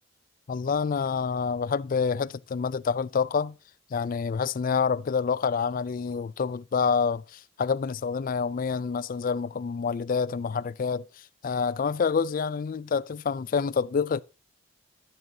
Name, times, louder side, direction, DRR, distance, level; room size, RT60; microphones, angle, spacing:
voice 1, 0.5-3.5 3.9-11.1 11.4-14.2, left 5 dB, 45° left, 0.4 m, -27 dB
11.0 x 7.6 x 2.8 m
head